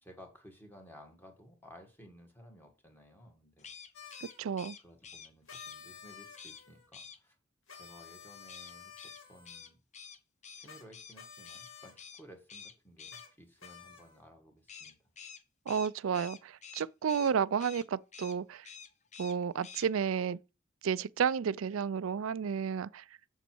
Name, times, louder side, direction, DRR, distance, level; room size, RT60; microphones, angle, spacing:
voice 1, 0.0-3.7 4.8-7.4 7.7-9.8 10.5-15.0, equal, 10° left, 1.9 m, -56 dB
sound 1, 3.6-5.8 6.4-6.6 6.9-7.2 8.5-11.2 11.5-11.7 12.0-12.2 12.5-13.2 14.7-17.3 17.6-17.9 18.1-18.4 18.6-19.4 19.6-19.9, left 6 dB, 35° left, 0.7 m, -49 dB
sound 2, 3.9-4.4 5.5-6.9 7.7-9.7 10.6-10.8 11.1-12.0 13.1-13.3 13.6-14.2, left 7 dB, 70° left, 2.2 m, -52 dB
voice 2, 4.2-4.8 15.7-18.7 19.2-20.4 20.8-23.0, right 7 dB, 75° right, 0.4 m, -32 dB
7.3 x 7.0 x 4.5 m
head